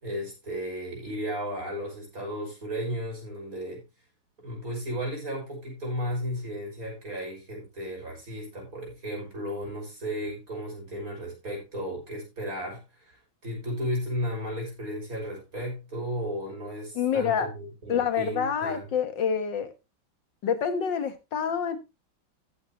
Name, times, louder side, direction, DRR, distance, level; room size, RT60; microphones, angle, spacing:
voice 1, 0.0-3.8 4.4-18.8, equal, 45° right, 6.4 m, -34 dB
voice 2, 16.9-17.5 17.9-19.7 20.4-21.8, left 7 dB, 65° left, 2.1 m, -27 dB
14.0 x 8.7 x 2.9 m
omnidirectional pair, 2.2 m